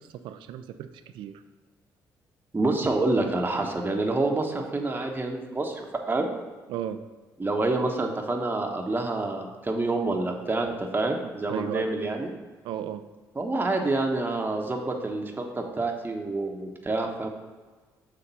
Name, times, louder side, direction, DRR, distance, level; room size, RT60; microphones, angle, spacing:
voice 1, 0.2-0.9 1.1-1.4 6.7-7.0 11.5-11.9 12.6-13.0, right 10 dB, 70° right, 10 dB, 0.5 m, -33 dB
voice 2, 2.5-6.3 7.4-12.3 13.3-17.3, right 2 dB, 20° right, 2 dB, 1.1 m, -27 dB
6.7 x 3.5 x 5.5 m, 1.4 s
hypercardioid pair, 50°, 9 cm